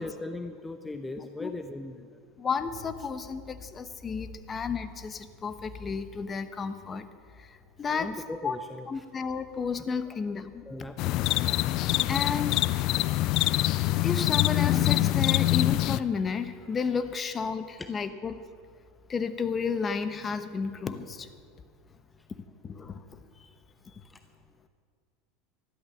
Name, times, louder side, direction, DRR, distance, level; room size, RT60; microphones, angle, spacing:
voice 1, 0.0-2.2 7.9-9.0 10.1-10.2 10.6-11.6 17.8-17.9 24.1-24.2, left 2 dB, 10° left, 7 dB, 0.7 m, -39 dB
voice 2, 1.2-1.5 2.4-7.1 7.4-8.1 8.4-8.6 8.9-10.6 12.1-12.6 14.0-18.4 19.1-21.3 22.6-23.5, left 5 dB, 30° left, 11 dB, 1.0 m, -32 dB
sound 1, 11.0-16.0, left 16 dB, 55° left, 0.4 m, -25 dB
13.0 x 12.0 x 7.2 m, 2.2 s
hypercardioid pair, 95°, 0 cm